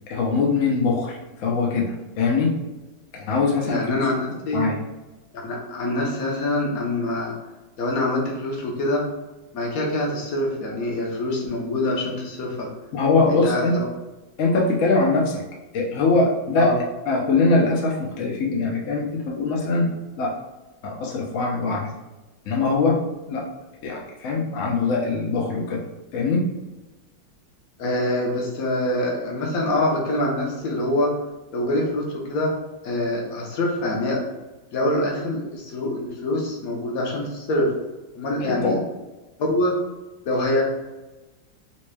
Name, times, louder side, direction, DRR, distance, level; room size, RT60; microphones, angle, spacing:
voice 1, 0.1-2.6 3.1-3.9 4.5-4.7 12.9-13.7 14.4-15.4 15.7-16.7 17.1-20.3 20.8-21.9 22.5-23.5 23.8-25.9 26.1-26.5 38.5-38.8, left 3 dB, 75° left, -2 dB, 0.7 m, -22 dB
voice 2, 3.6-4.6 5.4-7.3 7.8-9.1 9.5-12.7 13.3-13.8 16.6-16.8 27.8-31.1 31.5-32.5 32.8-34.2 34.7-37.7 38.1-38.8 39.4-39.7 40.3-40.6, left 1 dB, 60° left, -1 dB, 1.0 m, -25 dB
4.2 x 3.1 x 2.2 m, 1.1 s
omnidirectional pair, 2.2 m